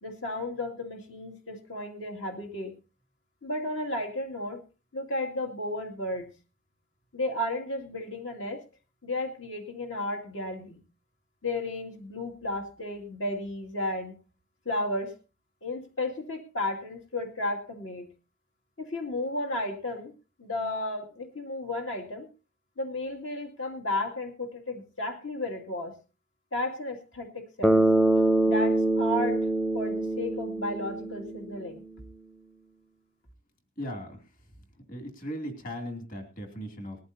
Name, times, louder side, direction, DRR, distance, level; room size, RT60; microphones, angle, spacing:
voice 1, 0.0-2.7 3.4-4.6 4.9-6.3 7.1-8.6 9.0-10.8 11.4-14.1 14.7-15.1 15.6-18.1 18.8-20.1 20.4-22.3 22.8-25.9 26.5-27.8 28.5-29.5 29.7-31.8, left 1 dB, 70° left, 2 dB, 2.4 m, -33 dB
Bass guitar, 27.6-31.6, right 1 dB, 5° left, 0.6 m, -24 dB
voice 2, 33.8-34.2 34.9-37.0, equal, 40° left, 4 dB, 2.7 m, -37 dB
19.5 x 14.0 x 2.8 m, 0.31 s
head